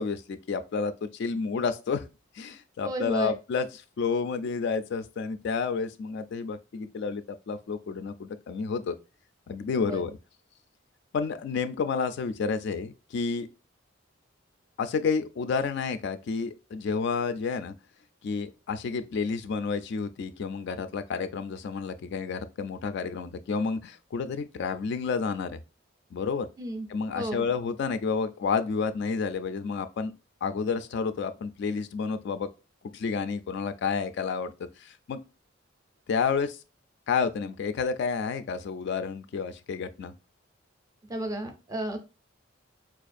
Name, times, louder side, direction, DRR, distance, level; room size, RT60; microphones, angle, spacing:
voice 1, 0.0-2.0 2.4-8.9 9.5-10.2 11.1-13.5 14.8-17.7 18.2-25.6 26.1-26.5 26.9-30.1 30.4-32.5 32.9-35.2 36.1-36.6 37.1-40.1, left 5 dB, 60° left, 0.3 m, -30 dB
voice 2, 2.8-3.3 9.8-10.0 26.6-26.9 27.1-27.4 41.1-42.0, right 1 dB, 20° right, 0.4 m, -32 dB
4.4 x 2.4 x 2.5 m
head